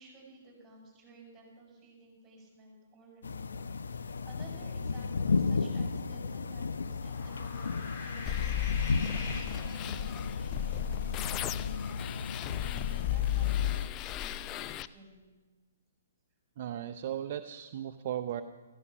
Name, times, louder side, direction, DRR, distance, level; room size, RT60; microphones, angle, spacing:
voice 1, 0.0-15.3, right 3 dB, 15° right, -1 dB, 7.3 m, -55 dB
sound 1, 3.2-13.9, left 4 dB, 75° left, 0.8 m, -34 dB
sound 2, 6.7-10.5, left 4 dB, 45° left, 3.7 m, -44 dB
sound 3, 8.3-14.9, left 13 dB, 25° left, 0.5 m, -34 dB
voice 2, 16.6-18.4, right 10 dB, 50° right, 8 dB, 0.7 m, -36 dB
15.0 x 15.0 x 6.2 m, 1.2 s
hypercardioid pair, 130°, 0 cm